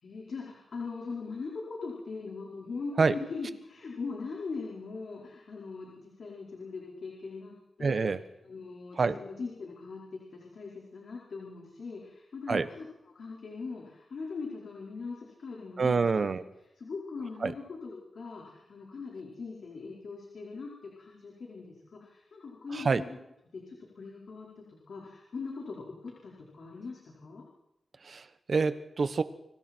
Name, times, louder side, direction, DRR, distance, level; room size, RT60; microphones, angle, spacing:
voice 1, 0.0-8.1 8.4-12.9 13.1-16.1 16.8-23.2 23.5-27.4, left 4 dB, 60° left, -3 dB, 5.0 m, -41 dB
voice 2, 7.8-8.2 9.0-9.2 12.5-12.7 15.8-16.4 17.4-17.5 22.7-23.0 28.0-29.2, right 4 dB, 45° right, 12 dB, 1.2 m, -27 dB
30.0 x 23.5 x 4.6 m, 0.88 s
wide cardioid pair, 125°, 0 cm